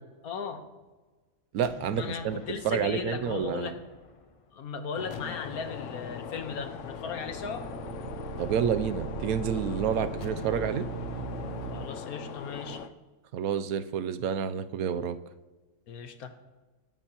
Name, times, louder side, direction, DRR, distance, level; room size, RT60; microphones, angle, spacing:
voice 1, 0.2-0.7 1.9-3.8 4.5-7.7 11.7-12.9 15.9-16.3, left 5 dB, 85° left, 7 dB, 1.5 m, -37 dB
voice 2, 1.5-3.7 8.4-10.9 13.3-15.2, right 7 dB, 85° right, 12 dB, 1.1 m, -29 dB
sound 1, 1.6-4.6 5.1-9.3 10.2-12.3, left 3 dB, 40° left, 0.5 m, -50 dB
sound 2, 4.9-12.9, left 7 dB, 65° left, 0.9 m, -40 dB
sound 3, 6.9-11.9, right 8 dB, 65° right, 0.6 m, -39 dB
22.0 x 9.1 x 3.0 m, 1.3 s
omnidirectional pair, 1.5 m